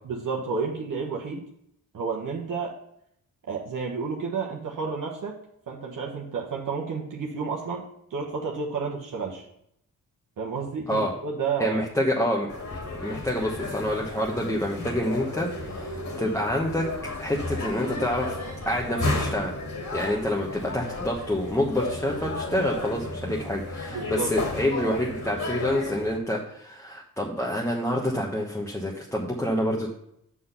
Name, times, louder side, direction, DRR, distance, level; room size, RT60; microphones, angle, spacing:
voice 1, 0.0-1.4 1.9-2.7 3.5-5.4 5.7-9.5 10.4-11.8 23.9-24.3, right 5 dB, 60° right, -1 dB, 1.2 m, -31 dB
voice 2, 11.6-12.5 13.0-16.9 17.2-18.4 18.7-19.6 19.9-29.9, left 1 dB, 10° left, -2 dB, 1.1 m, -27 dB
sound 1, 12.5-26.2, left 2 dB, 50° left, 2.6 m, -33 dB
6.2 x 6.0 x 5.6 m, 0.74 s
cardioid pair, 80°, 35 cm